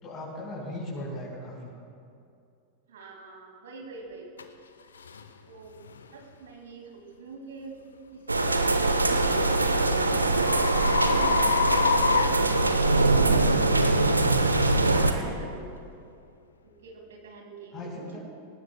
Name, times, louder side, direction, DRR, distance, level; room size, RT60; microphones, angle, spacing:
voice 1, 0.0-1.7 17.7-18.2, left 1 dB, 30° left, -6 dB, 4.4 m, -37 dB
voice 2, 2.9-4.3 5.5-5.8 6.1-7.8 8.1-14.0 14.7-15.7 16.6-18.2, right 3 dB, 60° right, 1 dB, 2.2 m, -43 dB
sound 1, 4.4-4.5 5.1-5.3 5.9-6.1 8.7-13.2, left 5 dB, 70° left, 0.8 m, -28 dB
sound 2, 8.3-15.1, right 2 dB, 80° right, 0.9 m, -23 dB
25.0 x 19.0 x 2.3 m, 2.5 s
figure-of-eight pair, 90°, 0 cm